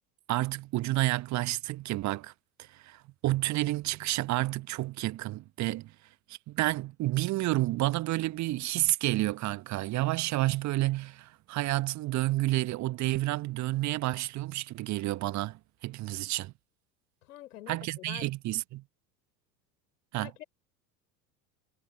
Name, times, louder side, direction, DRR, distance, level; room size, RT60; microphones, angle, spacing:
voice 1, 0.3-2.3 2.8-5.9 6.3-16.5 17.7-18.8 20.1-20.3, right 17 dB, 35° right, 1.4 m, -30 dB
voice 2, 17.2-17.8 18.1-18.3 20.2-20.4, left 14 dB, 60° left, 4.9 m, -45 dB
figure-of-eight pair, 75°, 48 cm